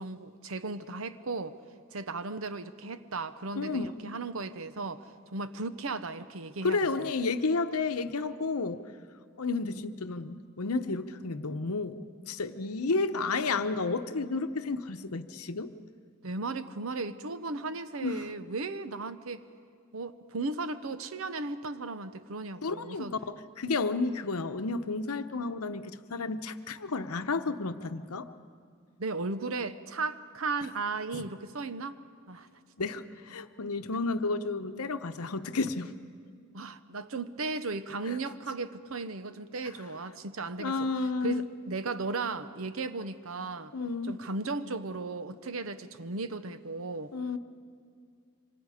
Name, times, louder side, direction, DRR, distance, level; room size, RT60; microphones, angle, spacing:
voice 1, 0.0-1.6 1.9-7.1 16.2-19.4 19.9-23.2 29.0-32.0 32.3-32.5 36.5-40.8 41.2-43.7 44.1-47.1, right 3 dB, 65° right, 12 dB, 0.8 m, -36 dB
voice 2, 3.6-3.9 6.6-8.8 9.4-12.0 12.3-15.7 18.0-18.3 22.6-28.3 31.1-31.2 32.8-35.9 38.1-38.2 40.6-41.5 43.7-44.2 47.1-47.4, left 3 dB, 80° left, 9 dB, 0.9 m, -31 dB
27.0 x 25.0 x 5.0 m, 2.2 s
head